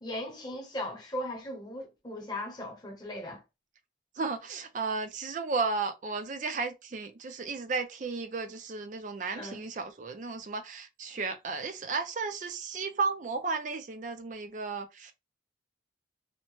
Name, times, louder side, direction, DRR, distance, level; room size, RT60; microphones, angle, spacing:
voice 1, 0.0-3.4 9.3-9.6, left 1 dB, 20° left, 0.8 m, -38 dB
voice 2, 4.2-15.1, right 4 dB, 40° right, 0.4 m, -34 dB
2.7 x 2.1 x 2.9 m
head